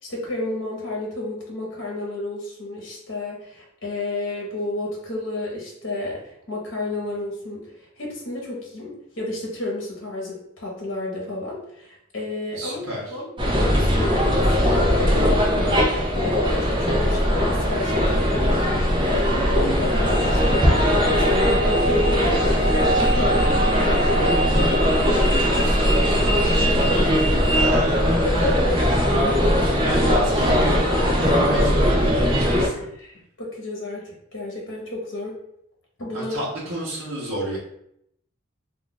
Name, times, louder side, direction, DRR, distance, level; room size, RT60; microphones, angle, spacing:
voice 1, 0.0-12.8 13.1-13.3 13.7-27.2 28.2-29.6 33.0-35.4 36.0-36.4, left 2 dB, 65° left, -3 dB, 1.0 m, -31 dB
voice 2, 12.5-13.1 25.6-25.8 27.5-28.1 28.4-29.0 29.8-30.9 31.1-32.9 36.1-37.6, right 1 dB, 70° right, -6 dB, 0.8 m, -30 dB
sound 1, 13.4-32.7, equal, 25° right, 0.5 m, -19 dB
2.4 x 2.3 x 3.8 m, 0.75 s
head